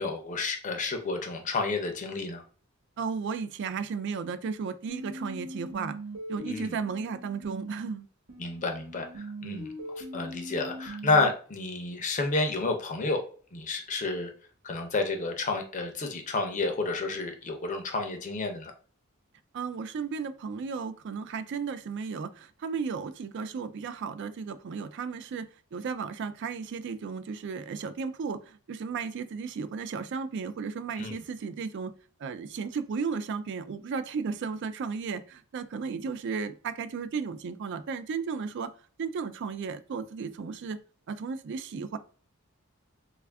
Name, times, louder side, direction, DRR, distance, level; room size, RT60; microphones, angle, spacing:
voice 1, 0.0-2.4 6.5-6.8 8.4-13.2 13.5-14.3 14.6-18.7 31.0-31.1, left 3 dB, 35° left, 5 dB, 0.5 m, -30 dB
voice 2, 3.0-6.0 6.3-8.1 19.5-31.9 32.2-38.7 39.0-40.8 41.1-42.0, right 5 dB, 55° right, 12 dB, 0.3 m, -34 dB
sound 1, 4.9-7.9 8.3-11.3, right 1 dB, 90° right, 1.1 m, -41 dB
3.3 x 2.4 x 3.3 m, 0.41 s
head